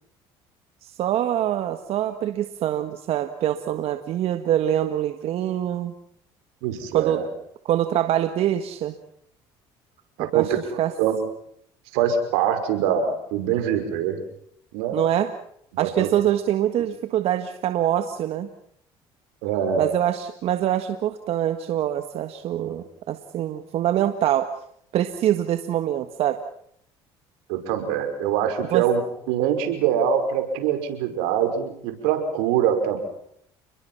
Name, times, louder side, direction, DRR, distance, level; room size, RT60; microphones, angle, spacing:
voice 1, 0.8-5.9 6.9-7.2 7.6-8.9 10.2-10.9 14.9-15.3 15.8-18.5 19.8-24.5 24.9-26.4 28.7-28.9, right 11 dB, 65° right, 8 dB, 1.7 m, -24 dB
voice 2, 6.6-7.3 10.2-11.2 11.9-14.2 14.7-15.0 15.7-16.1 19.4-19.9 27.5-29.0 29.3-33.0, right 8 dB, 90° right, 7 dB, 5.5 m, -24 dB
29.5 x 22.0 x 5.7 m, 0.68 s
supercardioid pair, 90°, 11 cm